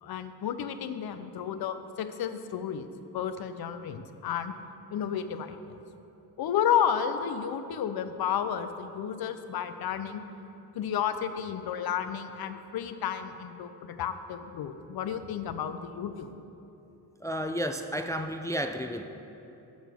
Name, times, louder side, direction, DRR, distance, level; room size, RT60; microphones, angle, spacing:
voice 1, 0.0-2.9 3.1-4.5 4.9-5.8 6.4-10.2 10.8-16.3, left 8 dB, 65° left, 10 dB, 0.6 m, -32 dB
voice 2, 17.2-19.0, equal, 10° left, 6 dB, 0.3 m, -32 dB
12.0 x 6.5 x 3.5 m, 2.9 s
cardioid pair, 70°, 40 cm